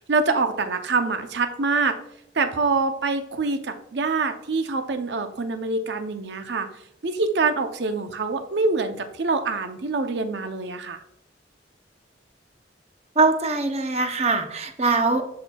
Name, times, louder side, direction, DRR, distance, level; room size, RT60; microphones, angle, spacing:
voice 1, 0.1-1.9 2.3-6.7 7.0-11.0, right 3 dB, 70° right, 8 dB, 0.6 m, -25 dB
voice 2, 13.2-15.3, right 3 dB, 35° right, 6 dB, 0.7 m, -22 dB
11.0 x 4.3 x 2.3 m, 0.77 s
head